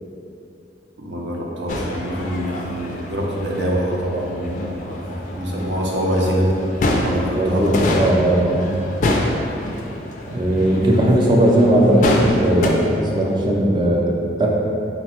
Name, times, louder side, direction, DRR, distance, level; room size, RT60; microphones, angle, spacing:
voice 1, 1.0-6.5 7.0-7.9, equal, 80° right, -2 dB, 0.6 m, -24 dB
sound 1, 1.7-12.7, left 1 dB, 45° left, 0.3 m, -26 dB
voice 2, 7.3-8.7 10.3-14.5, right 1 dB, 25° right, -2 dB, 0.4 m, -18 dB
3.9 x 2.2 x 4.2 m, 2.7 s
head